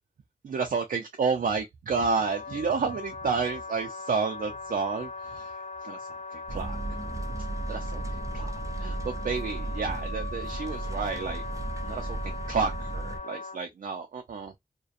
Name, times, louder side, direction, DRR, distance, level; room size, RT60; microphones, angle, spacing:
voice 1, 0.4-5.5 5.8-6.0 6.3-6.8 7.7-8.0 8.3-8.5 8.8-11.4 11.8-14.5, right 5 dB, 85° right, 0.4 m, -30 dB
Wind instrument woodwind instrument, 2.0-13.6, left 4 dB, 55° left, 0.4 m, -40 dB
sound 1, 6.5-13.2, right 2 dB, 25° right, 0.4 m, -35 dB
2.4 x 2.2 x 2.5 m
cardioid pair, 55°, 14 cm